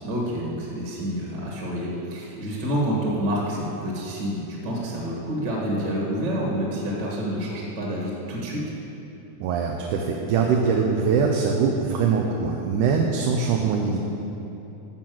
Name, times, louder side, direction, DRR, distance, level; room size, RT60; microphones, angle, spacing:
voice 1, 0.0-8.6, equal, 40° right, -3 dB, 2.0 m, -28 dB
voice 2, 9.4-14.0, right 5 dB, 80° right, 1 dB, 2.3 m, -22 dB
14.0 x 5.8 x 7.8 m, 3.0 s
omnidirectional pair, 3.7 m